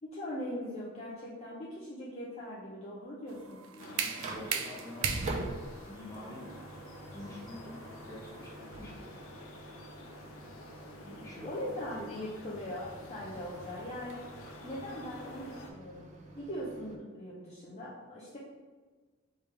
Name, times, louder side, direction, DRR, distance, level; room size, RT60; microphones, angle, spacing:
voice 1, 0.0-3.6 11.4-14.2 14.6-16.0 16.3-18.4, left 1 dB, 30° left, -7 dB, 0.7 m, -40 dB
Microwave oven, 3.3-17.0, right 2 dB, 35° right, 0.6 m, -48 dB
sound 1, 3.3-9.1, right 6 dB, 80° right, 0.4 m, -38 dB
voice 2, 3.4-5.6 5.8-6.6 7.1-9.0 11.0-12.1, left 1 dB, 15° left, -6 dB, 1.1 m, -46 dB
sound 2, 3.8-15.7, left 1 dB, 85° left, 0.6 m, -49 dB
3.5 x 3.3 x 4.3 m, 1.4 s
head